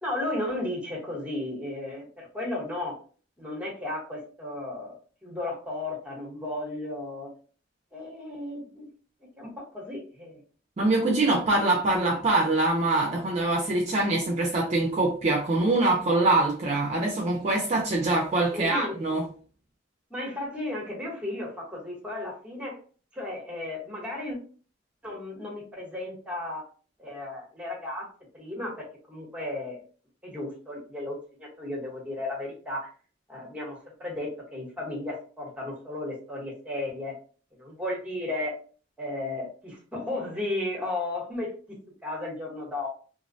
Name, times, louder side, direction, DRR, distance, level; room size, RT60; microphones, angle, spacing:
voice 1, 0.0-3.0 3.4-4.9 5.2-7.3 7.9-8.9 9.4-10.4 18.5-19.0 20.1-22.8 23.1-24.4 25.0-26.6 27.0-28.1 28.3-29.8 30.2-32.9 33.3-37.2 37.6-38.5 39.0-41.6 42.0-42.9, left 2 dB, 5° right, 0.9 m, -34 dB
voice 2, 10.8-19.3, right 2 dB, 35° right, 0.4 m, -24 dB
2.4 x 2.1 x 2.5 m
head